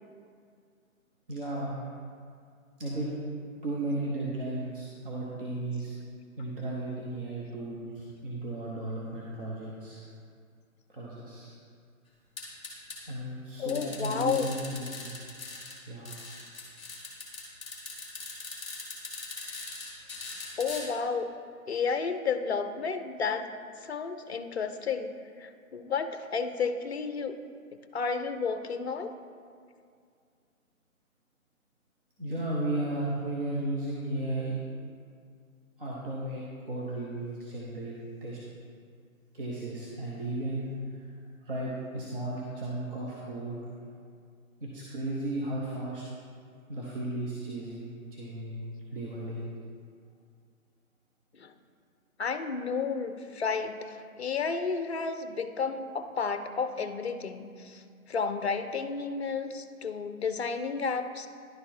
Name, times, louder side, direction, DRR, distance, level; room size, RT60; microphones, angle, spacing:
voice 1, 1.3-1.9 2.8-3.1 3.6-5.9 6.4-10.0 10.9-11.5 13.1-15.2 15.8-16.1 32.2-34.6 35.8-37.9 38.2-38.4 39.3-40.7 41.4-43.6 44.6-46.0 46.7-48.6 48.9-49.5, right 2 dB, 40° right, -5 dB, 1.0 m, -35 dB
sound 1, 12.4-13.0 13.7-15.7 16.1-20.8, left 3 dB, 10° left, 1.3 m, -41 dB
voice 2, 13.6-14.5 20.6-21.3 21.7-23.5 23.8-25.1 25.4-27.4 27.9-29.1 51.4-51.5 52.2-53.7 54.2-57.8 58.1-61.3, left 5 dB, 50° left, 9 dB, 0.5 m, -31 dB
11.0 x 4.3 x 4.5 m, 2.2 s
figure-of-eight pair, 145°, 43 cm